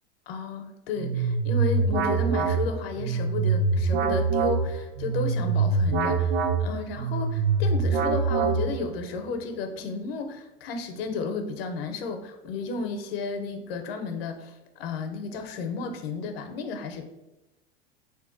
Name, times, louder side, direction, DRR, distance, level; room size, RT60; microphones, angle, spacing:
voice 1, 0.3-17.0, left 4 dB, 70° left, 6 dB, 0.5 m, -33 dB
sound 1, 1.0-9.0, right 4 dB, 65° right, 0.5 m, -24 dB
3.5 x 2.6 x 2.5 m, 0.99 s
hypercardioid pair, 95°, 32 cm